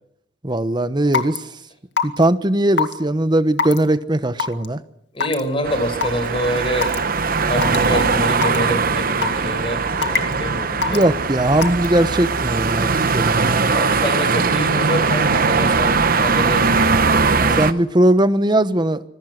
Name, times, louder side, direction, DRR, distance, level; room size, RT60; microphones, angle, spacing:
voice 1, 0.4-1.4 2.0-4.8 10.8-13.6 17.4-19.0, right 1 dB, 25° right, 1.1 m, -19 dB
Raindrop / Water tap faucet / Drip, 1.1-1.4 2.0-2.2 2.8-2.9 3.6-3.8 4.4-4.7 5.2-5.4 6.0-6.1 6.8-7.0 7.6-7.8 8.4-8.6 9.2-9.5 10.0-10.3 10.8-11.0 11.6-11.9, left 5 dB, 65° left, 2.2 m, -21 dB
voice 2, 5.1-11.0 13.7-17.7, equal, 30° left, 5.6 m, -26 dB
sound 1, 5.6-17.7, right 4 dB, 50° right, 1.0 m, -20 dB
26.5 x 21.5 x 6.6 m
head